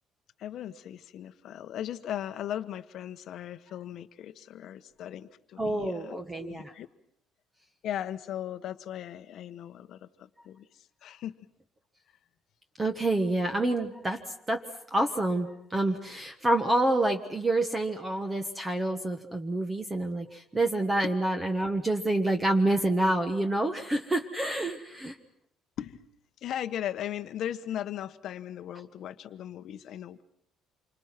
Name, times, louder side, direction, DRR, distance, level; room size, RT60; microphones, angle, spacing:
voice 1, 0.4-6.9 7.8-11.3 25.8-26.0 26.4-30.2, left 11 dB, 55° left, 9 dB, 1.1 m, -38 dB
voice 2, 5.6-6.7 12.8-14.2 14.5-14.6 14.9-25.1, right 2 dB, 15° right, 5 dB, 1.4 m, -27 dB
28.0 x 25.5 x 6.0 m, 0.73 s
cardioid pair, 155°, 0 cm